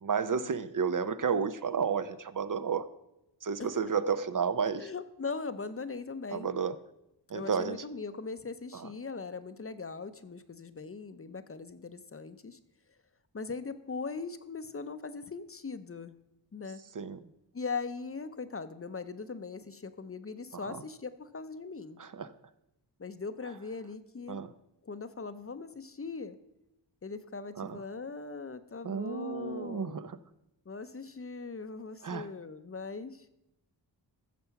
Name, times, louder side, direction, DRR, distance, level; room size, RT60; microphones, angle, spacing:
voice 1, 0.0-2.9 3.4-4.9 6.3-6.7 7.3-7.8 8.7-8.9 17.0-17.2 20.5-20.8 22.0-22.3 24.3-24.5 27.6-27.8 28.8-30.1 32.0-32.3, right 6 dB, 45° right, 13 dB, 0.6 m, -32 dB
voice 2, 3.6-3.9 4.6-6.5 7.3-12.6 13.3-16.1 16.5-16.8 17.5-22.0 23.0-24.4 24.8-26.4 27.0-30.0 30.7-33.3, left 4 dB, 30° left, 12 dB, 0.7 m, -40 dB
14.5 x 6.8 x 5.9 m, 0.88 s
wide cardioid pair, 105°, 44 cm